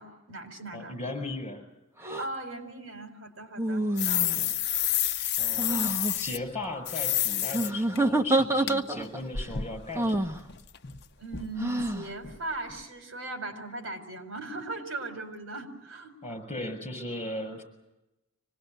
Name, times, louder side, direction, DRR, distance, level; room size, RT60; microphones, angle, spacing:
voice 1, 0.0-1.0 2.2-4.4 5.7-6.0 11.2-16.1, right 2 dB, 65° right, 7 dB, 4.7 m, -39 dB
voice 2, 0.7-1.6 4.1-4.5 5.4-5.8 6.1-10.4 16.2-17.6, left 2 dB, 30° left, 7 dB, 6.8 m, -37 dB
sound 1, 2.0-2.3 3.6-4.5 5.6-6.1 7.5-9.2 9.9-10.4 11.6-12.1, right 1 dB, 15° right, 1.3 m, -27 dB
sound 2, 4.0-6.4 6.8-7.7 7.9-8.0 8.7-8.8 9.0-11.0 11.3-11.5 11.8-11.9 12.2-12.4 12.7-12.8, left 11 dB, 55° left, 1.1 m, -29 dB
25.5 x 19.5 x 9.2 m, 0.93 s
head